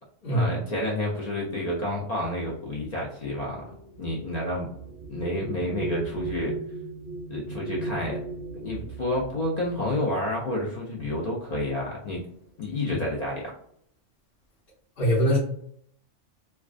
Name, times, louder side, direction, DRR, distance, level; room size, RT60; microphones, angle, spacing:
voice 1, 0.3-4.7 5.1-6.5 7.3-8.2 8.5-12.2 12.6-13.5, left 1 dB, 65° left, -3 dB, 0.4 m, -30 dB
sound 1, 2.3-11.2 12.2-12.3 12.7-13.2, right 3 dB, 60° right, 0.6 m, -38 dB
voice 2, 15.0-15.4, equal, 50° left, -8 dB, 1.0 m, -22 dB
2.3 x 2.2 x 2.4 m, 0.68 s
omnidirectional pair, 1.3 m